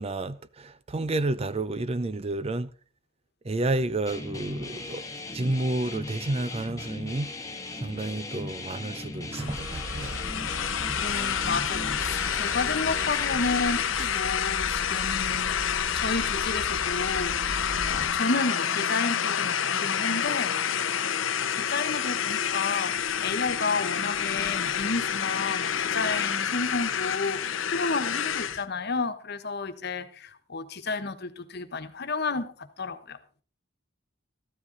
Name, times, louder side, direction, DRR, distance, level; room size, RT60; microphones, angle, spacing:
voice 1, 0.0-2.7 3.4-5.0 5.3-7.3 7.8-10.2, right 2 dB, 30° right, 0.5 m, -30 dB
sound 1, 4.1-13.8, left 2 dB, 15° left, 1.3 m, -38 dB
sound 2, 9.3-28.6, left 8 dB, 75° left, 0.8 m, -28 dB
sound 3, 9.4-18.1, equal, 65° right, 3.5 m, -39 dB
voice 2, 11.0-20.7 21.5-33.2, left 3 dB, 55° left, 1.3 m, -31 dB
14.0 x 13.0 x 4.0 m
head